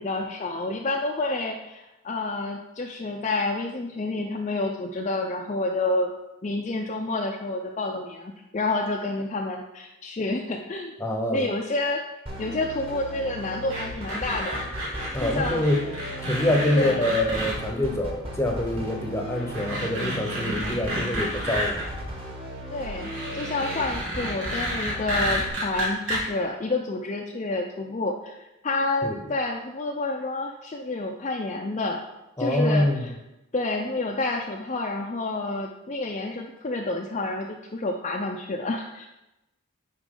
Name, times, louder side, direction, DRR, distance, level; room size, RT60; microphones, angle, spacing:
voice 1, 0.0-6.1 6.4-10.9 11.3-12.0 12.4-14.6 15.2-15.6 16.8-17.1 22.7-32.0 32.4-33.2 33.5-39.1, left 2 dB, 35° left, 1 dB, 0.5 m, -29 dB
voice 2, 11.0-11.5 15.1-15.8 16.2-21.8 29.0-29.2 32.4-33.1, left 1 dB, 15° left, 3 dB, 0.8 m, -25 dB
sound 1, 12.3-25.5, equal, 25° right, 1.4 m, -36 dB
sound 2, 13.7-17.5 18.7-18.8 19.3-21.8 22.8-26.2, equal, 80° right, 2.9 m, -31 dB
9.9 x 4.4 x 3.8 m, 0.95 s
head